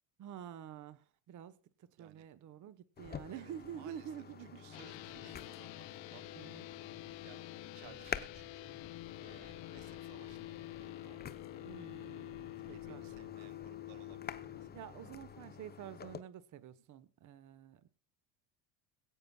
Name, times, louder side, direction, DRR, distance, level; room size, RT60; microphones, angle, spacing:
voice 1, 0.2-4.6 6.3-6.6 11.6-13.0 14.7-17.9, right 10 dB, 40° right, 1.1 m, -49 dB
voice 2, 2.0-2.3 3.3-6.7 7.2-8.8 9.2-11.6 12.7-14.7, right 13 dB, 75° right, 1.4 m, -60 dB
sound 1, 3.0-16.2, left 7 dB, 20° left, 0.7 m, -49 dB
sound 2, 4.7-14.7, left 17 dB, 60° left, 0.9 m, -48 dB
sound 3, 7.8-15.5, left 7 dB, 45° left, 4.3 m, -60 dB
22.0 x 8.8 x 2.3 m
supercardioid pair, 120°, 49 cm